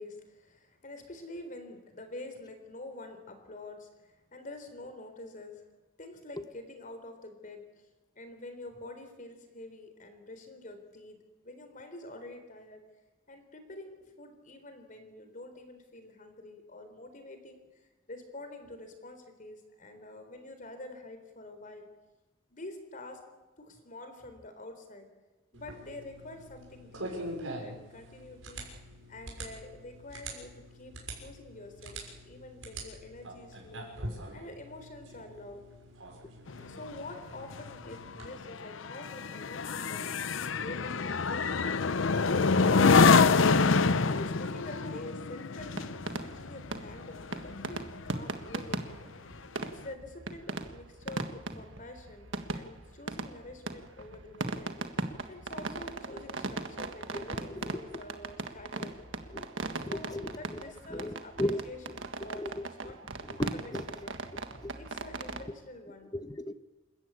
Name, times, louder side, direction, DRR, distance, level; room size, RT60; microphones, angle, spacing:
voice 1, 0.0-5.6 6.0-7.6 8.2-11.2 11.4-12.8 13.3-21.9 22.5-23.2 23.6-25.1 25.5-28.7 29.1-33.9 34.3-35.6 36.7-43.4 44.0-45.9 46.2-47.8 48.1-49.3 49.6-52.3 52.5-54.7 55.3-58.9 59.7-62.5 62.8-63.0 63.4-63.7 64.0-64.2 64.7-66.1, left 2 dB, 40° left, 7 dB, 3.9 m, -47 dB
sound 1, 25.5-38.3, right 1 dB, 90° right, 6.5 m, -44 dB
sound 2, 36.5-48.2 48.6-48.9, left 4 dB, 70° left, 0.7 m, -26 dB
sound 3, 45.6-65.5, right 3 dB, 70° right, 1.7 m, -39 dB
voice 2, 57.1-58.0 58.8-58.9 59.3-59.5 59.9-60.6 60.9-61.6 61.9-62.0 62.3-63.0 63.2-63.8 64.6-64.7 66.1-66.5, left 1 dB, 20° left, 11 dB, 1.0 m, -36 dB
28.0 x 14.5 x 8.6 m, 1.2 s
head